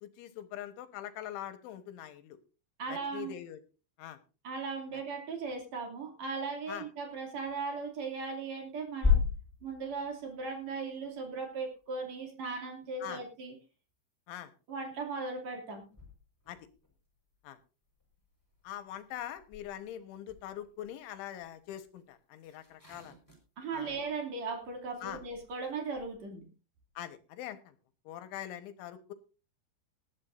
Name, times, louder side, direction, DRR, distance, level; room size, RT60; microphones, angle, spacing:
voice 1, 0.0-2.4 2.9-3.6 4.0-4.2 6.7-6.9 13.0-13.2 14.3-14.5 16.5-16.6 17.4-17.6 18.6-23.1 23.7-24.0 25.0-25.2 27.0-27.8 28.1-29.1, left 11 dB, 85° left, 10 dB, 3.5 m, -43 dB
voice 2, 2.8-3.4 4.4-9.2 9.6-13.5 14.7-15.9 23.6-26.4, right 4 dB, 40° right, 3 dB, 3.5 m, -38 dB
sound 1, 7.8-8.4 8.8-12.1 15.6-17.6 17.9-26.2, left 6 dB, 5° left, 4.3 m, -38 dB
19.0 x 12.5 x 2.6 m, 0.34 s
omnidirectional pair, 5.5 m